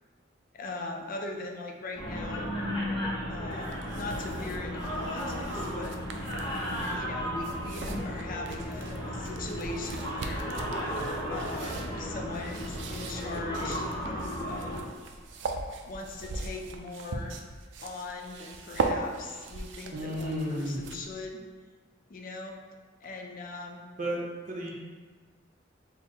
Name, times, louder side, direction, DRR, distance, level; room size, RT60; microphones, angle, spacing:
voice 1, 0.5-2.5 3.3-6.3 6.9-11.0 11.3-14.9 15.9-17.4 17.8-21.4 22.1-22.6 23.0-23.8, left 3 dB, 45° left, 2 dB, 0.4 m, -40 dB
sound 1, 1.9-14.8, equal, 30° left, 0.8 m, -34 dB
sound 2, 3.5-21.2, right 3 dB, 70° right, 0.4 m, -39 dB
voice 2, 19.9-20.9 24.0-24.2 24.5-24.7, equal, 45° right, -4 dB, 0.8 m, -32 dB
3.5 x 2.1 x 4.2 m, 1.5 s
head